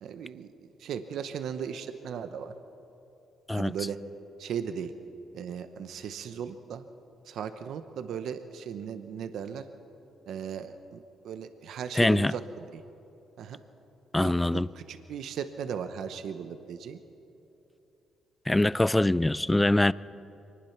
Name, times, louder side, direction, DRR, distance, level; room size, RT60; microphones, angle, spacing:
voice 1, 0.0-2.5 3.5-4.0 4.4-4.9 5.3-6.8 7.2-9.6 10.3-12.4 12.7-12.8 13.4-13.6 14.2-17.0, right 7 dB, 75° right, 1.0 m, -37 dB
voice 2, 12.0-12.3 14.1-14.7 18.5-19.9, left 1 dB, 10° left, 0.4 m, -23 dB
24.0 x 20.0 x 5.9 m
cardioid pair, 90°, 0 cm